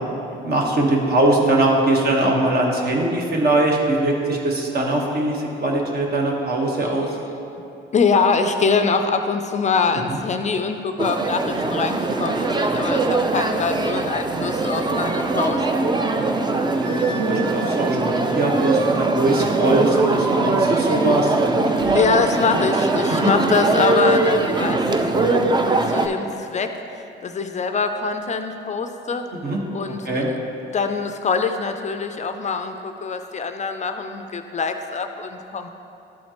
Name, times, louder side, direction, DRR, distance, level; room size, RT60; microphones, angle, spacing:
voice 1, 0.1-7.1 10.1-10.2 16.1-16.3 16.7-21.6 23.2-23.3 29.4-29.6 29.9-30.3, right 2 dB, 50° right, -1 dB, 1.2 m, -21 dB
voice 2, 7.9-15.7 21.9-24.8 25.1-29.2 29.7-30.2 30.7-35.7, left 4 dB, 35° left, 7 dB, 0.4 m, -24 dB
sound 1, 11.0-26.1, right 3 dB, 20° right, 0.5 m, -21 dB
Wind instrument woodwind instrument, 16.8-18.8, right 3 dB, 75° right, 0.8 m, -37 dB
sound 2, 20.0-23.2, right 2 dB, 5° right, 1.4 m, -35 dB
11.5 x 4.3 x 2.9 m, 2.7 s
cardioid pair, 90°, 20 cm